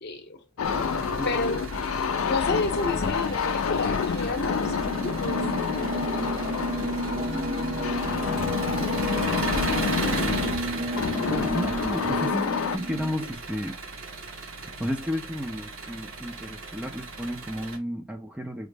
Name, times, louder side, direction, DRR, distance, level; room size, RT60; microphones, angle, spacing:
voice 1, 0.0-0.4 1.2-1.7 2.2-5.4, left 2 dB, 55° left, 0.8 m, -31 dB
sound 1, 0.6-12.8, left 6 dB, 85° left, 0.4 m, -28 dB
Engine, 0.6-17.8, right 2 dB, 80° right, 1.2 m, -36 dB
voice 2, 0.7-1.4 11.3-13.8 14.8-18.7, equal, 5° right, 0.5 m, -33 dB
sound 2, 4.1-13.3, right 1 dB, 40° right, 0.7 m, -32 dB
4.9 x 2.0 x 3.3 m
head